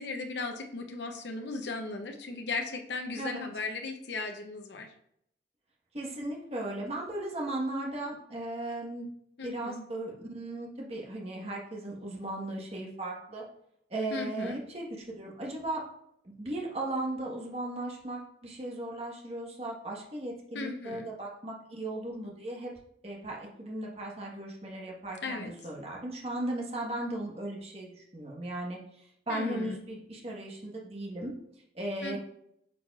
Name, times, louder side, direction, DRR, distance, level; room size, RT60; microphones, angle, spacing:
voice 1, 0.0-4.9 9.4-9.8 14.1-14.6 20.5-21.1 25.2-25.5 29.3-29.8 32.0-32.2, left 3 dB, 75° left, 4 dB, 0.7 m, -36 dB
voice 2, 5.9-9.1 9.4-13.4 13.9-15.8 16.2-22.7 23.0-31.3 31.7-32.2, right 1 dB, 35° right, -2 dB, 1.3 m, -37 dB
8.5 x 4.8 x 2.4 m, 0.73 s
head